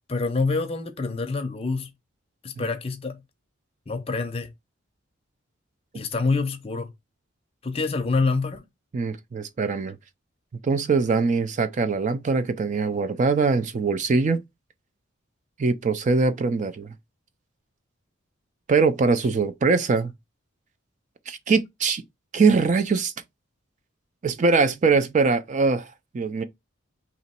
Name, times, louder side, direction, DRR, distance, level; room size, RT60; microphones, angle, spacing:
voice 1, 0.1-1.9 2.4-3.2 3.9-4.5 5.9-6.9 7.6-8.6 19.2-19.3, left 3 dB, 30° left, 0.5 m, -26 dB
voice 2, 8.9-10.0 10.6-14.4 15.6-16.9 18.7-20.1 21.3-22.0 22.3-23.1 24.2-26.4, right 4 dB, 35° right, 0.3 m, -22 dB
3.0 x 2.9 x 4.2 m
head